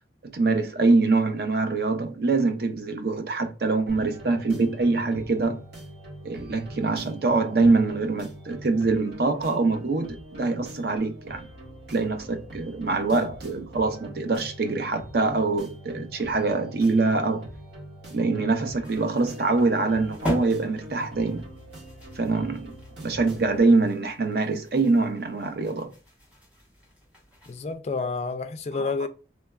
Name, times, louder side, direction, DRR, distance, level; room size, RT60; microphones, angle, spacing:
voice 1, 0.2-5.6 6.2-11.5 11.9-17.5 18.1-21.4 22.2-22.7 23.0-25.9 28.8-29.1, right 3 dB, 60° right, 0.5 m, -24 dB
sound 1, 3.9-23.6, equal, 75° right, 1.7 m, -43 dB
sound 2, 18.8-27.7, equal, 10° right, 1.3 m, -40 dB
voice 2, 27.5-29.1, left 4 dB, 35° left, 0.3 m, -29 dB
3.3 x 3.1 x 2.3 m
head